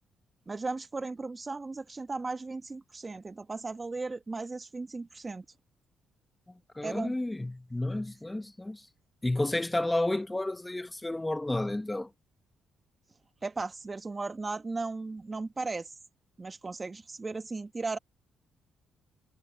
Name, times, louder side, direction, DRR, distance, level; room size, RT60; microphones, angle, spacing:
voice 1, 0.5-5.4 6.8-7.2 13.4-15.9 16.4-18.0, right 3 dB, 25° right, 1.3 m, -36 dB
voice 2, 6.7-8.8 9.2-12.1, left 2 dB, 10° left, 0.8 m, -31 dB
cardioid pair, 90°, 0 cm